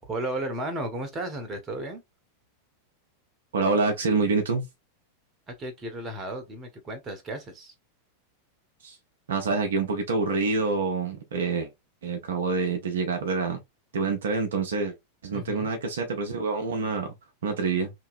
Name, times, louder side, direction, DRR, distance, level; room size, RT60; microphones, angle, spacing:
voice 1, 0.0-2.0 5.5-7.7 15.3-15.7, right 1 dB, 25° right, 1.0 m, -34 dB
voice 2, 3.5-4.7 8.8-9.0 9.3-11.7 12.0-13.6 13.9-14.9 15.2-17.1 17.4-17.9, right 4 dB, 65° right, 0.7 m, -26 dB
2.9 x 2.8 x 2.5 m
figure-of-eight pair, 90°, 0 cm